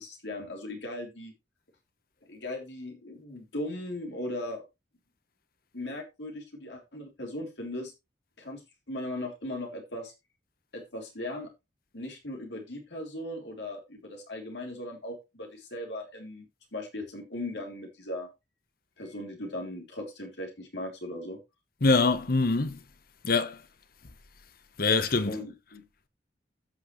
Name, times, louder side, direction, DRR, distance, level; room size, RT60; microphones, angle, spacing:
voice 1, 0.0-1.3 2.2-4.6 5.7-7.9 8.4-8.6 8.9-10.1 10.7-11.5 11.9-16.5 16.7-18.3 19.0-21.4 25.3-25.9, left 1 dB, 75° left, 3.1 m, -38 dB
voice 2, 21.8-22.8 23.2-23.6 24.8-25.4, left 3 dB, 55° left, 0.9 m, -24 dB
15.5 x 6.0 x 3.1 m
head